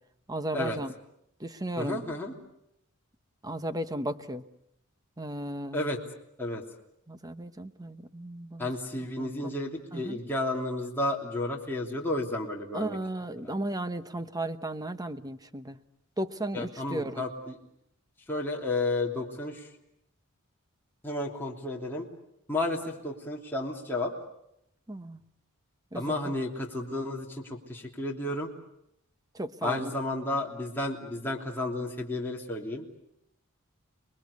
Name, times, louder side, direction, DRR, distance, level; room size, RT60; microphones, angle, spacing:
voice 1, 0.3-0.9 1.4-2.0 3.4-4.4 5.2-5.9 7.1-8.7 9.2-9.4 9.9-10.2 12.7-15.8 16.2-17.2 24.9-25.2 25.9-26.3 29.3-29.9, right 1 dB, 15° right, 11 dB, 1.1 m, -35 dB
voice 2, 1.8-2.3 5.7-6.0 6.4-6.6 8.6-13.0 13.4-13.5 16.5-17.6 18.3-19.7 21.0-22.1 22.5-24.1 25.9-28.5 29.6-32.8, left 2 dB, 10° left, -2 dB, 3.2 m, -32 dB
30.0 x 21.0 x 8.4 m, 0.79 s
head